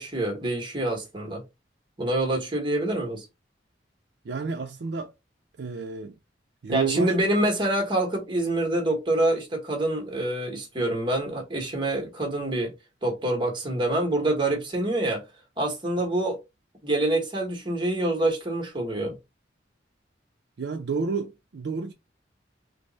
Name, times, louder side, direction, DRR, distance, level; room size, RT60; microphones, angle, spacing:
voice 1, 0.0-1.4 2.0-3.2 6.7-12.7 13.0-15.2 15.6-16.4 16.8-19.2, right 1 dB, 25° right, 1.1 m, -26 dB
voice 2, 4.2-5.1 5.6-6.2 6.6-7.2 20.6-21.9, right 4 dB, 65° right, 0.4 m, -30 dB
3.3 x 2.0 x 3.9 m
head